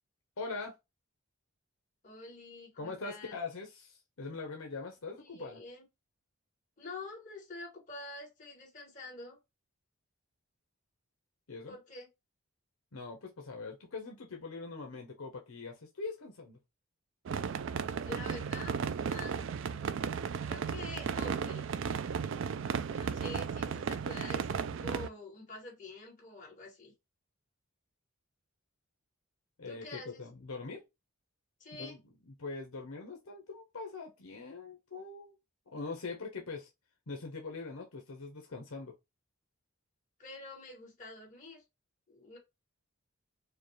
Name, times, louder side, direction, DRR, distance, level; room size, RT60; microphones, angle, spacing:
voice 1, 0.4-0.8 2.8-5.6 11.5-11.7 12.9-16.6 29.6-30.8 31.8-32.0 32.3-35.4 35.7-36.7 37.1-38.9, left 4 dB, 75° left, 0.9 m, -42 dB
voice 2, 2.0-3.4 5.2-5.8 6.8-9.4 11.7-12.1 18.0-19.5 20.4-21.7 22.9-26.9 29.7-30.2 31.6-32.0 40.2-41.6 42.1-42.4, left 2 dB, 35° left, 2.2 m, -47 dB
sound 1, 17.3-25.1, right 6 dB, 60° right, 0.3 m, -35 dB
4.9 x 2.3 x 3.1 m
head